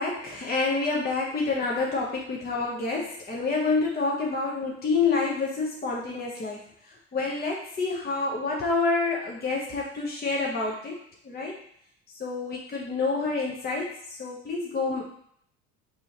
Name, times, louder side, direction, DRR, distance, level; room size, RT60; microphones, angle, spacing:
voice 1, 0.0-11.0 11.2-11.5 12.2-15.0, left 3 dB, 30° left, -3 dB, 0.9 m, -28 dB
4.8 x 2.6 x 2.9 m, 0.66 s
hypercardioid pair, 70°, 33 cm